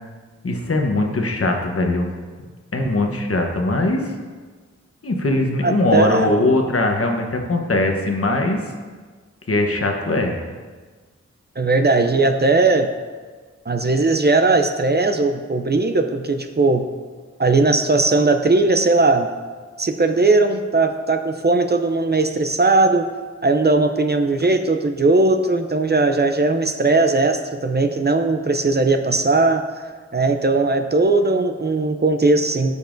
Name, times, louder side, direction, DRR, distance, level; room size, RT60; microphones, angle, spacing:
voice 1, 0.4-2.1 2.7-4.1 5.0-8.6 9.5-10.3, left 2 dB, 50° left, 2 dB, 1.0 m, -20 dB
voice 2, 5.6-6.3 11.6-12.9 13.7-16.9 17.4-19.3 19.8-23.1 23.4-29.6 30.1-32.8, right 3 dB, 35° right, 7 dB, 0.5 m, -18 dB
13.5 x 5.4 x 2.6 m, 1.4 s
wide cardioid pair, 60°, 29 cm